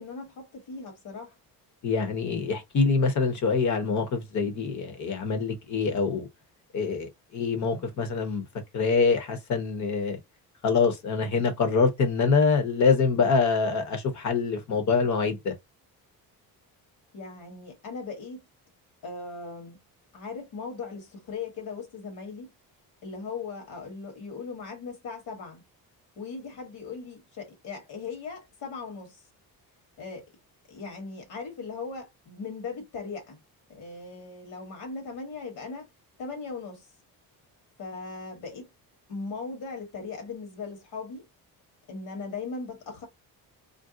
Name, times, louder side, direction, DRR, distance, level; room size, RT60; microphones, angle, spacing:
voice 1, 0.0-1.3 17.1-18.4 19.0-19.8 20.1-22.5 23.0-25.6 26.2-29.2 30.0-30.3 30.7-33.4 33.7-35.9 36.2-36.9 37.8-38.7 39.1-41.3 41.9-43.1, left 4 dB, 70° left, 1.3 m, -38 dB
voice 2, 1.8-6.3 6.7-8.4 8.7-10.2 10.6-15.5, left 5 dB, 50° left, 0.9 m, -25 dB
2.6 x 2.0 x 3.7 m
cardioid pair, 135°, 38 cm